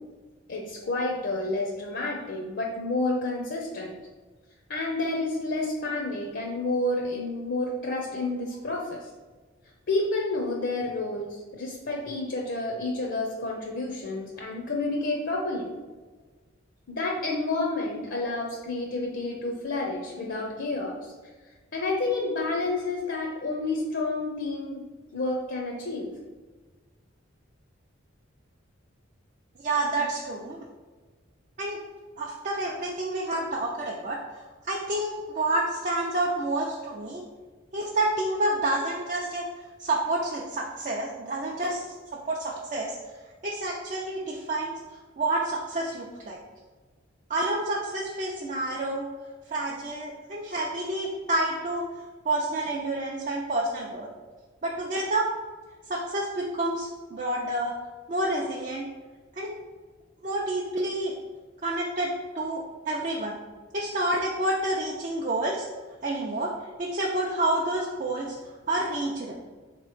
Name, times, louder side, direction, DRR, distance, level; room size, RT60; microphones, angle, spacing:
voice 1, 0.5-3.9 4.7-9.1 9.9-15.7 16.9-21.1 21.7-24.8 25.1-26.1, left 2 dB, 55° left, 0 dB, 0.6 m, -30 dB
voice 2, 29.6-30.6 31.6-31.8 32.2-34.2 34.6-37.2 37.7-39.4 39.8-41.8 42.3-43.0 43.4-44.7 45.2-46.4 47.3-49.1 49.5-51.8 52.2-54.1 54.6-55.3 55.9-57.7 58.1-58.8 59.4-59.5 60.2-61.1 61.6-62.1 62.3-63.4 63.7-65.7 66.0-66.5 66.8-68.3 68.7-69.4, right 2 dB, 40° right, -2 dB, 0.4 m, -28 dB
3.7 x 3.0 x 4.8 m, 1.3 s
head